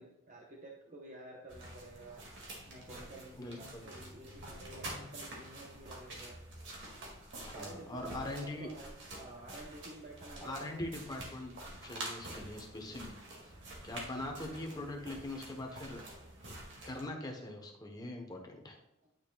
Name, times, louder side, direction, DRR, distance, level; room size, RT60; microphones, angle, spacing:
voice 1, 0.0-2.2 2.7-6.4 7.5-8.9 9.1-10.8, right 2 dB, 35° right, -1 dB, 0.9 m, -51 dB
sound 1, 1.5-17.1, right 1 dB, 55° right, 2.2 m, -48 dB
voice 2, 3.4-3.8 7.4-8.7 10.4-13.1 13.4-13.5 13.8-16.0 16.8-18.8, left 1 dB, 20° left, 2 dB, 1.0 m, -42 dB
10.5 x 6.3 x 2.3 m, 0.90 s
head